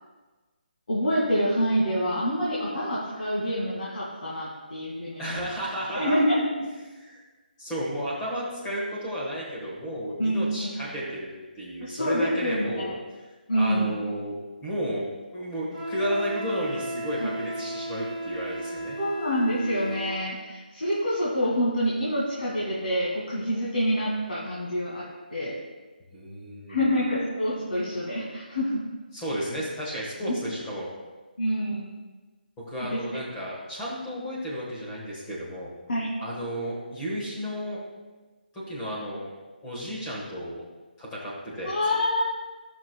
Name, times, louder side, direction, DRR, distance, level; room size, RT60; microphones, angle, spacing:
voice 1, 0.9-5.4 6.0-6.4 10.2-10.7 11.8-12.9 13.5-14.0 17.2-17.3 19.0-25.6 26.7-28.7 30.3-30.4 31.4-31.9 32.9-33.0 35.9-36.1 41.6-42.2, equal, 60° left, -7 dB, 2.0 m, -27 dB
voice 2, 5.2-6.2 6.7-7.2 7.6-13.0 13.5-15.1 15.3-19.0 26.1-26.8 29.1-30.9 32.7-35.7 36.2-37.8 38.5-39.3 39.6-40.6 41.0-41.7, equal, 10° left, -5 dB, 1.2 m, -33 dB
Wind instrument woodwind instrument, 15.7-20.2, right 1 dB, 15° right, 1.7 m, -35 dB
14.0 x 6.1 x 2.2 m, 1.3 s
hypercardioid pair, 175°, 5 cm